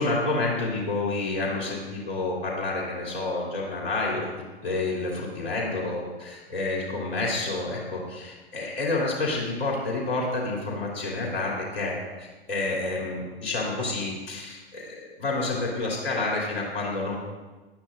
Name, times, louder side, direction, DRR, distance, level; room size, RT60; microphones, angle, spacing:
voice 1, 0.0-4.2 4.6-11.9 12.5-17.2, left 2 dB, 75° left, -3 dB, 3.2 m, -29 dB
18.5 x 11.0 x 2.6 m, 1.2 s
hypercardioid pair, 110°, 31 cm